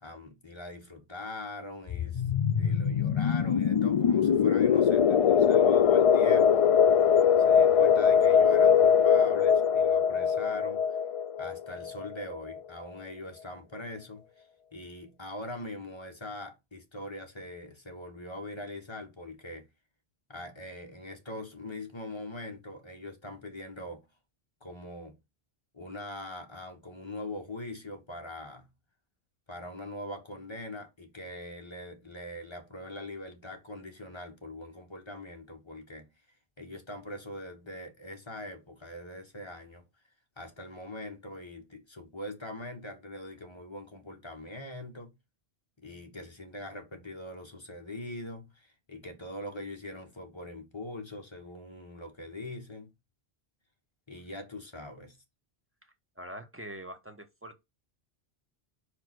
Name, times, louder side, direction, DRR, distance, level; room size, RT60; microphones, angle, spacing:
voice 1, 0.0-2.2 2.6-6.7 7.4-10.8 11.4-14.5 14.7-19.7 20.3-24.0 24.6-25.2 25.7-28.7 29.5-36.1 36.6-39.9 40.4-45.1 45.8-52.9 54.1-55.2, left 1 dB, 25° left, 1.5 m, -42 dB
sound 1, 1.9-12.4, left 7 dB, 65° left, 0.3 m, -22 dB
voice 2, 55.8-57.6, right 1 dB, 15° right, 1.0 m, -44 dB
4.9 x 4.8 x 6.2 m
omnidirectional pair, 1.1 m